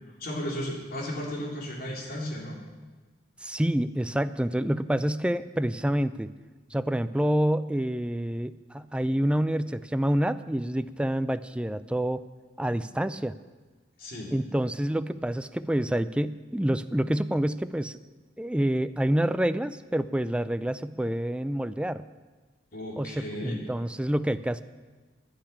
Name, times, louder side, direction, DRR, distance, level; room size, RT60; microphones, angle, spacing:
voice 1, 0.2-2.6 14.0-14.3 22.7-23.6, equal, 55° left, -2 dB, 3.5 m, -34 dB
voice 2, 3.4-6.3 6.7-12.2 12.6-13.4 14.3-18.0 18.4-22.0 23.0-24.6, right 1 dB, 5° right, 12 dB, 0.4 m, -27 dB
10.5 x 10.5 x 8.7 m, 1.3 s
head